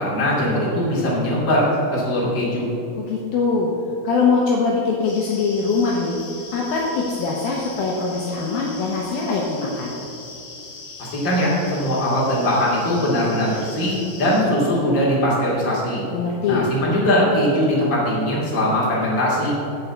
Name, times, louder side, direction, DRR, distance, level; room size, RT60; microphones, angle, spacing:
voice 1, 0.0-2.7 11.0-16.0 16.5-19.5, equal, 30° left, -5 dB, 2.3 m, -20 dB
voice 2, 3.0-3.7 4.0-6.2 6.5-9.9 16.1-16.7, left 4 dB, 80° left, -2 dB, 2.1 m, -22 dB
sound 1, 5.1-14.4, left 3 dB, 65° left, 3.3 m, -40 dB
10.5 x 5.3 x 8.0 m, 2.7 s
omnidirectional pair, 5.5 m